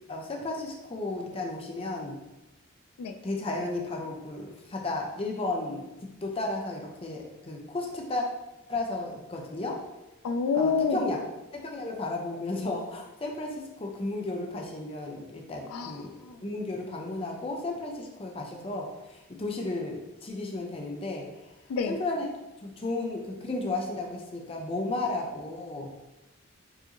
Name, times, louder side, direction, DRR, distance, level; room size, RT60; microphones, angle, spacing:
voice 1, 0.1-2.2 3.2-8.2 8.7-9.8 10.5-11.2 11.5-16.1 16.4-21.5 21.9-22.3 22.6-25.9, left 2 dB, 25° left, 1 dB, 0.5 m, -33 dB
voice 2, 10.2-11.0 15.7-15.9 16.2-16.4 21.7-21.9, left 5 dB, 90° left, 8 dB, 0.3 m, -27 dB
4.7 x 2.6 x 2.9 m, 0.98 s
head